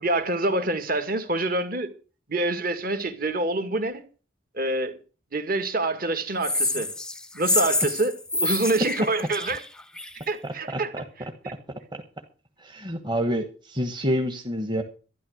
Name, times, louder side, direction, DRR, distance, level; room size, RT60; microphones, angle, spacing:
voice 1, 0.0-1.9 2.3-4.0 4.5-4.9 5.3-6.9 7.3-9.6 10.3-11.0 11.4-11.5, right 2 dB, 50° right, 2.0 m, -26 dB
sound 1, 6.4-10.2, left 2 dB, 5° left, 0.6 m, -27 dB
voice 2, 12.6-14.8, equal, 25° right, 1.3 m, -27 dB
12.5 x 11.0 x 6.3 m
head